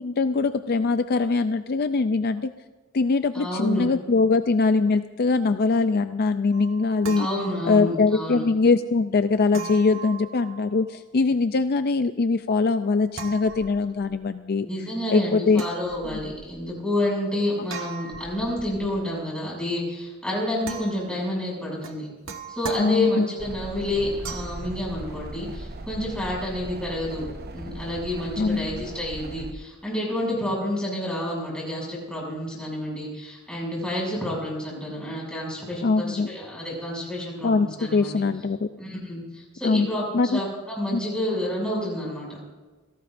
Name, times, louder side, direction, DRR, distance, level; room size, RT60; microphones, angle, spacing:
voice 1, 0.0-2.5 2.9-7.3 7.6-14.7 15.1-15.6 22.8-23.3 28.4-28.8 35.8-36.3 37.4-38.7 39.6-39.9 40.1-40.4 40.9-41.0, left 4 dB, 45° left, 10 dB, 0.4 m, -22 dB
voice 2, 3.3-3.8 7.2-8.4 14.6-22.1 22.5-27.3 27.5-38.1 38.8-42.4, left 1 dB, 5° left, -4 dB, 6.7 m, -29 dB
sound 1, 6.5-8.1 9.5-10.9 13.1-14.2 15.5-16.6 17.7-19.1 20.6-21.3 21.8-23.4 24.2-24.7, right 5 dB, 65° right, 1.3 m, -39 dB
sound 2, 23.4-29.5, right 2 dB, 45° right, 0.9 m, -38 dB
27.5 x 17.5 x 2.6 m, 1.3 s
head